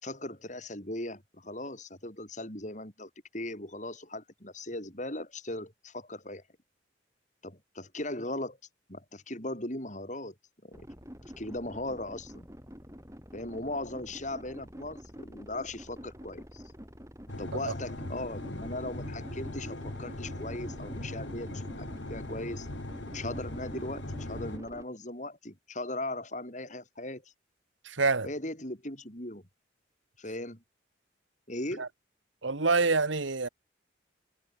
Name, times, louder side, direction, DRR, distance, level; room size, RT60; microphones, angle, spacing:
voice 1, 0.0-6.4 7.4-8.6 8.9-10.3 10.6-10.8 11.2-12.5 13.3-16.6 17.4-22.7 23.1-27.2 28.2-29.4 30.2-30.6 31.5-31.9, left 1 dB, 40° left, 7.0 m, -38 dB
sound 1, 10.7-24.9, equal, 15° right, 6.8 m, -48 dB
sound 2, 17.3-24.6, left 1 dB, 75° left, 2.2 m, -40 dB
voice 2, 27.8-28.3 31.8-31.9 32.4-33.5, right 4 dB, 85° right, 1.5 m, -26 dB
head